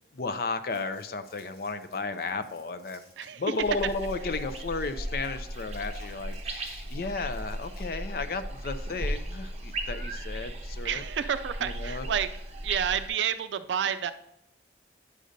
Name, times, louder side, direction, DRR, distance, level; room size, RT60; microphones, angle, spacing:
voice 1, 0.1-3.1 3.4-11.0 11.6-12.1, left 3 dB, 55° left, 11 dB, 0.5 m, -33 dB
Crumpling crinkling, 0.7-8.1, left 1 dB, 35° left, 2.9 m, -60 dB
sound 1, 3.6-13.1, right 1 dB, 35° right, 0.9 m, -36 dB
voice 2, 10.8-12.3 12.6-14.1, right 8 dB, 85° right, 12 dB, 0.4 m, -29 dB
9.8 x 6.4 x 2.6 m, 0.81 s
head